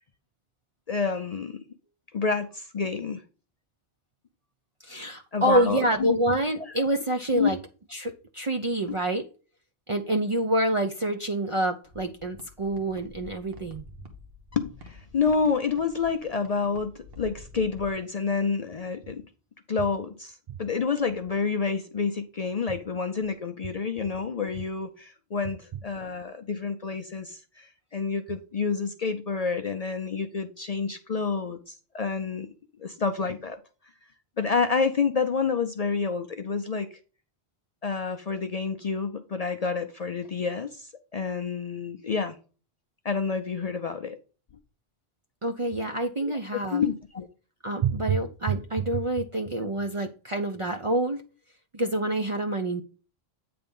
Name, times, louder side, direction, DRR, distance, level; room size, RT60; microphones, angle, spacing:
voice 1, 0.9-1.6 2.1-3.2 5.3-6.2 6.6-6.7 7.3-7.5 14.5-19.2 19.7-32.5 32.8-33.6 34.4-36.9 37.8-42.4 43.0-44.2 46.2-46.4 46.7-47.3, left 5 dB, 50° left, 0.5 m, -29 dB
voice 2, 4.8-7.6 7.9-9.3 9.9-13.9 45.4-46.8 47.6-51.2 51.7-52.8, right 1 dB, 40° right, 0.4 m, -27 dB
sound 1, 11.8-17.9, left 2 dB, 65° right, 1.3 m, -48 dB
8.6 x 3.4 x 5.3 m
omnidirectional pair, 1.1 m